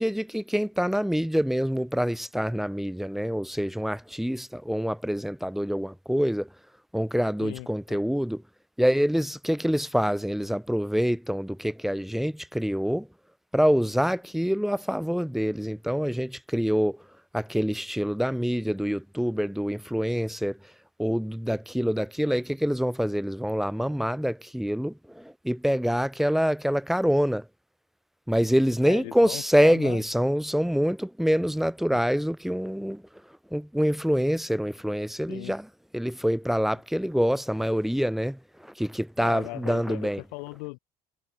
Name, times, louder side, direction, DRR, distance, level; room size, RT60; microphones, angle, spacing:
voice 1, 0.0-6.5 6.9-8.4 8.8-13.1 13.5-17.0 17.3-20.7 21.0-27.5 28.3-33.0 33.5-40.2, equal, ahead, 1.0 m, -26 dB
voice 2, 7.4-8.0 28.8-30.0 31.9-32.0 35.3-35.5 39.2-40.8, left 31 dB, 75° left, 1.9 m, -38 dB
hypercardioid pair, 70°, 20 cm